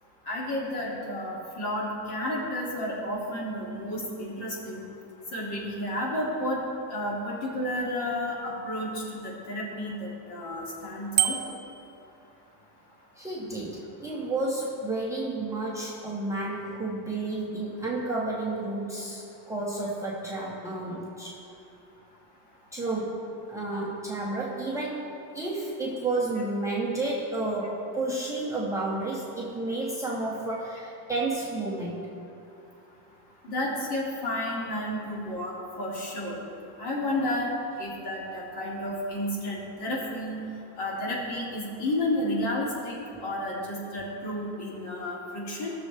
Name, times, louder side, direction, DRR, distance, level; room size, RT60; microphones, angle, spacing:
voice 1, 0.3-4.8 5.3-6.6 6.9-11.4 33.4-36.4 36.8-37.5 37.8-40.4 40.8-45.7, left 1 dB, 50° left, -4 dB, 2.7 m, -31 dB
Bicycle bell, 11.2-11.8, right 11 dB, 40° right, 0.6 m, -26 dB
voice 2, 13.2-21.4 22.7-32.1, right 2 dB, 5° right, -5 dB, 0.8 m, -31 dB
17.0 x 6.7 x 3.4 m, 2.7 s
cardioid pair, 165°, 50 cm